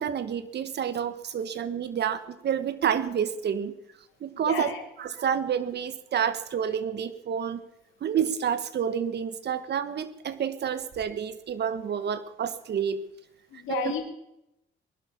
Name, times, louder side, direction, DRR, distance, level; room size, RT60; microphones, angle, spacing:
voice 1, 0.0-3.7 4.2-4.7 5.0-7.6 8.0-13.0 13.7-13.9, right 8 dB, 60° right, 13 dB, 1.4 m, -29 dB
voice 2, 4.5-4.8 13.5-14.0, left 8 dB, 85° left, 5 dB, 2.7 m, -31 dB
20.5 x 11.5 x 5.6 m, 0.84 s
cardioid pair, 90°, 20 cm